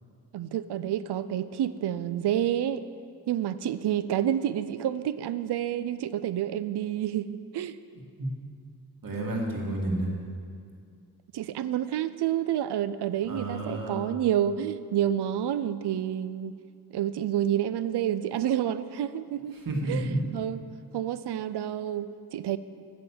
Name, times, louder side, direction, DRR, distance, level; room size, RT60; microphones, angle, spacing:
voice 1, 0.3-2.9 3.3-7.8 11.3-16.6 16.9-19.6 19.9-20.0 20.3-20.6 20.9-22.6, right 11 dB, 80° right, 14 dB, 0.6 m, -29 dB
voice 2, 9.0-10.1 13.2-14.1 19.5-20.3, right 1 dB, 55° right, -1 dB, 2.2 m, -30 dB
9.7 x 7.8 x 7.4 m, 2.3 s
cardioid pair, 75°, 39 cm